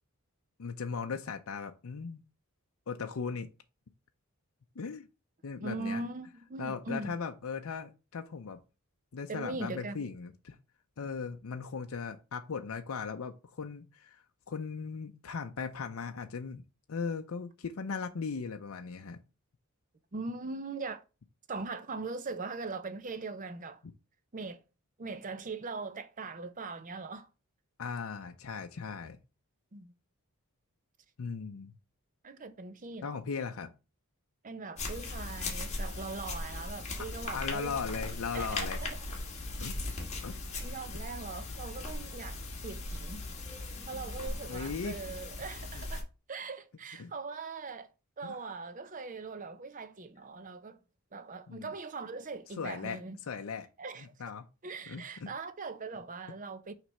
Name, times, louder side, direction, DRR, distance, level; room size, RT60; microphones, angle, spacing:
voice 1, 0.6-2.2 2.9-3.5 4.8-5.1 5.4-6.0 6.6-8.6 9.1-10.6 11.0-16.6 16.9-19.2 23.8-23.9 27.8-29.2 31.2-31.7 33.0-33.7 37.3-38.8 39.6-39.8 40.2-40.4 44.5-45.0 45.7-45.8 47.0-47.1 48.2-48.4 51.5-51.7 52.6-53.7 54.2-54.4 54.9-55.3, left 5 dB, 70° left, 0.5 m, -38 dB
voice 2, 5.6-7.2 9.3-10.0 20.1-21.0 21.5-23.8 24.3-24.6 25.0-27.3 29.7-29.9 32.2-33.2 34.4-37.8 38.3-39.0 40.6-42.4 42.6-43.2 43.6-47.9 48.2-50.8 51.1-53.2 53.8-54.1 54.6-56.7, right 3 dB, 35° right, 0.6 m, -41 dB
sound 1, 34.8-46.0, left 2 dB, 30° left, 1.6 m, -38 dB
5.9 x 3.3 x 5.4 m
head